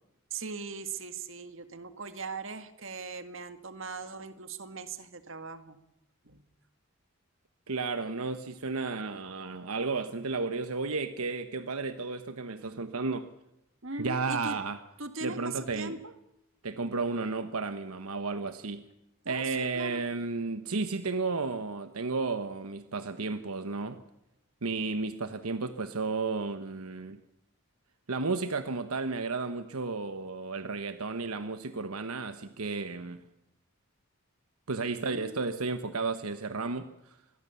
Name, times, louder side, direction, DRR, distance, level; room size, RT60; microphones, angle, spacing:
voice 1, 0.3-5.8 6.2-6.4 13.8-14.6 15.0-16.1 19.2-20.0 34.9-35.4, right 4 dB, 60° right, 10 dB, 1.9 m, -40 dB
voice 2, 7.7-13.3 14.0-14.8 15.2-15.9 16.6-18.8 19.3-24.0 24.6-27.2 28.1-33.2 34.7-37.2, right 4 dB, 80° right, 10 dB, 1.2 m, -33 dB
26.0 x 20.5 x 7.0 m, 0.87 s
head